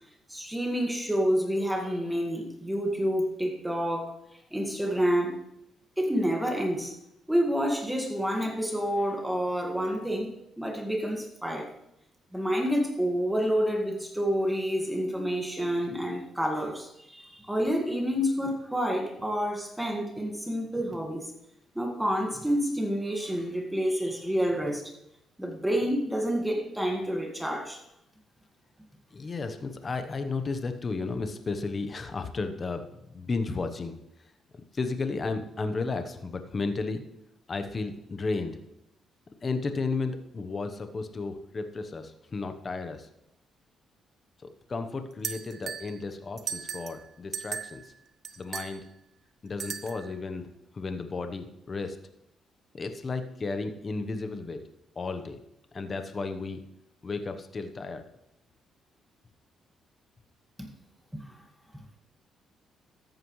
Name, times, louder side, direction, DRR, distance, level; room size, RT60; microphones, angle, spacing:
voice 1, 0.3-4.2 4.5-5.4 6.0-7.0 7.3-11.7 12.3-21.3 21.8-24.8 25.4-27.8 60.6-60.7 61.1-61.3, equal, 5° right, 2 dB, 1.8 m, -28 dB
voice 2, 29.1-34.0 34.5-37.0 37.5-38.6 39.4-43.1 44.4-47.9 48.4-48.9 49.4-50.5 50.7-52.0 52.7-54.6 55.0-55.4 55.7-56.6 57.0-58.0, left 3 dB, 35° left, 8 dB, 1.0 m, -33 dB
sound 1, 45.2-45.9 46.4-47.0 47.3-47.8 48.2-48.7 49.6-50.1, right 7 dB, 55° right, 0.9 m, -36 dB
13.5 x 9.1 x 3.2 m, 0.82 s
cardioid pair, 90°, 0 cm